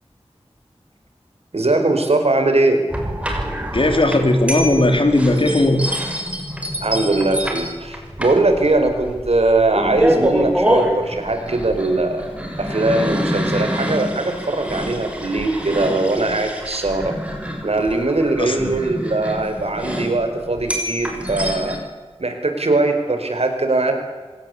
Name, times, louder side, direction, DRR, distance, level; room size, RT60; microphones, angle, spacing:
voice 1, 1.5-2.8 6.8-12.3 12.6-17.2 17.6-21.8 22.2-23.9, right 2 dB, 70° right, 6 dB, 5.2 m, -20 dB
sound 1, 2.9-21.8, equal, 10° right, 6.6 m, -26 dB
voice 2, 3.7-5.8 18.4-18.7, left 1 dB, 55° left, 5 dB, 4.3 m, -17 dB
26.0 x 18.5 x 8.6 m, 1.4 s
wide cardioid pair, 50°, 11 cm